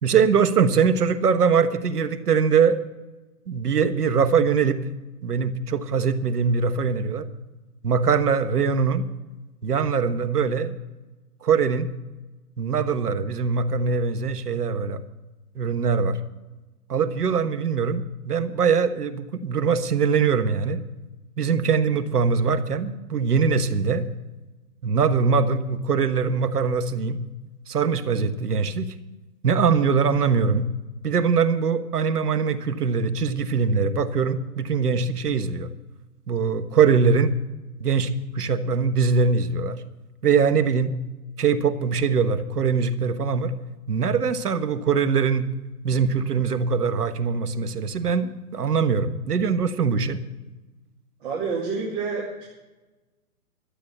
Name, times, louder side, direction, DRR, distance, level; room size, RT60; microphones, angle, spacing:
voice 1, 0.0-2.8 3.5-4.8 5.2-7.3 7.8-9.1 9.6-10.7 11.4-11.9 12.6-15.0 15.5-16.2 16.9-20.8 21.4-24.0 24.8-27.2 27.7-28.9 29.4-30.7 31.0-35.7 36.3-37.4 37.8-38.1 38.3-39.8 40.2-40.9 41.4-43.5 43.9-45.5 45.8-50.2, right 5 dB, 90° right, 11 dB, 1.4 m, -22 dB
voice 2, 51.2-52.4, right 4 dB, 35° right, -3 dB, 2.4 m, -28 dB
12.5 x 8.5 x 7.9 m, 1.1 s
hypercardioid pair, 160°, 45 cm